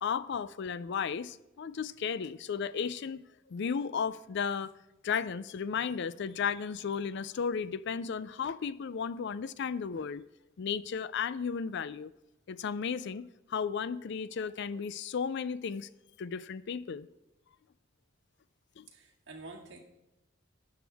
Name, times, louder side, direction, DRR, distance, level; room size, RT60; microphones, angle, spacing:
voice 1, 0.0-3.2 3.5-4.7 5.0-10.2 10.6-12.1 12.5-15.9 16.2-17.1 18.8-18.9, left 6 dB, 60° left, 0.4 m, -34 dB
voice 2, 18.9-19.8, right 2 dB, 65° right, 2.1 m, -48 dB
12.0 x 9.7 x 3.5 m
head